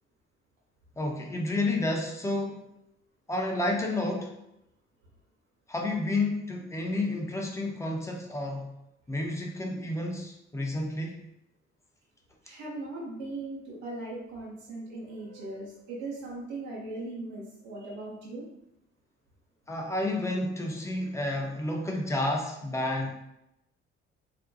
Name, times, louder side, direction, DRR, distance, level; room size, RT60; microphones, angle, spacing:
voice 1, 1.0-2.6 3.3-4.3 5.7-8.7 9.1-11.3 19.7-23.1, left 2 dB, 10° left, 0 dB, 0.5 m, -30 dB
voice 2, 12.4-18.5, right 2 dB, 80° right, -4 dB, 0.7 m, -39 dB
2.5 x 2.1 x 2.6 m, 0.84 s
hypercardioid pair, 50°, 35 cm